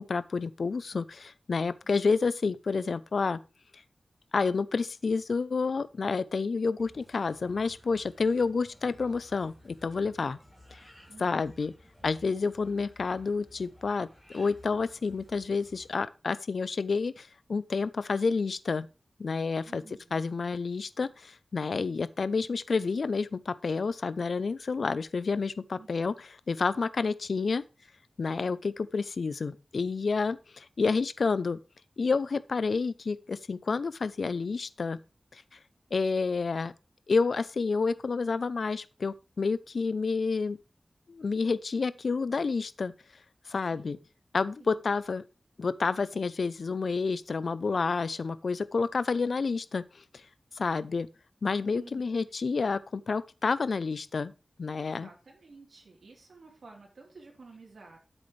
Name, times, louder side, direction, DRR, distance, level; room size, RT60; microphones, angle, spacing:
voice 1, 0.0-3.4 4.3-10.4 10.7-10.8 11.2-11.7 12.0-14.1 14.3-18.9 19.2-19.8 20.1-26.1 26.5-27.7 28.2-31.6 32.0-35.0 35.3-35.6 35.9-36.7 37.1-40.6 41.1-42.9 43.5-44.0 44.3-45.2 45.6-50.0 50.6-51.1 51.4-54.3 54.6-55.1, left 4 dB, 80° left, 0.6 m, -29 dB
sound 1, 6.8-15.9, left 1 dB, ahead, 5.5 m, -56 dB
voice 2, 11.1-11.6 19.6-20.2 25.7-25.9 43.6-44.0 44.6-44.8 51.7-52.1 54.7-58.0, right 3 dB, 85° right, 3.5 m, -53 dB
10.0 x 8.2 x 3.2 m
wide cardioid pair, 80°, 0 cm